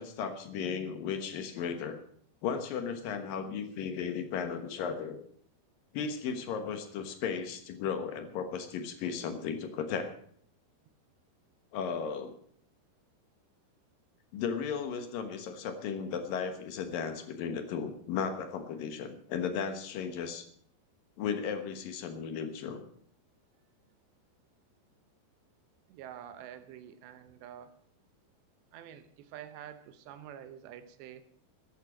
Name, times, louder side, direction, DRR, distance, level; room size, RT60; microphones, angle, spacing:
voice 1, 0.0-2.0 2.4-5.2 5.9-10.1 11.7-12.3 14.3-20.4 21.2-22.8, left 6 dB, 65° left, 7 dB, 2.6 m, -35 dB
voice 2, 25.9-27.8 28.7-31.2, right 10 dB, 85° right, 11 dB, 3.2 m, -47 dB
13.5 x 11.0 x 6.4 m, 0.62 s
omnidirectional pair, 4.9 m